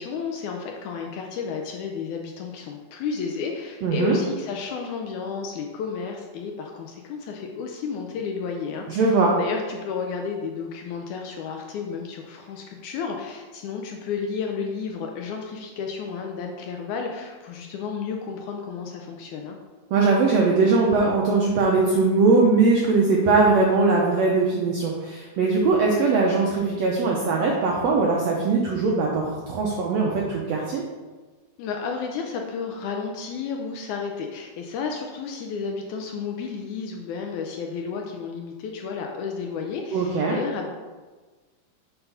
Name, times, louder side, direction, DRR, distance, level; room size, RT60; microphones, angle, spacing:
voice 1, 0.0-19.6 31.6-40.7, left 5 dB, 75° left, 2 dB, 1.8 m, -32 dB
voice 2, 3.8-4.2 8.9-9.3 19.9-30.8 39.9-40.4, right 3 dB, 80° right, -2 dB, 1.5 m, -20 dB
6.8 x 4.4 x 5.5 m, 1.3 s
omnidirectional pair, 4.0 m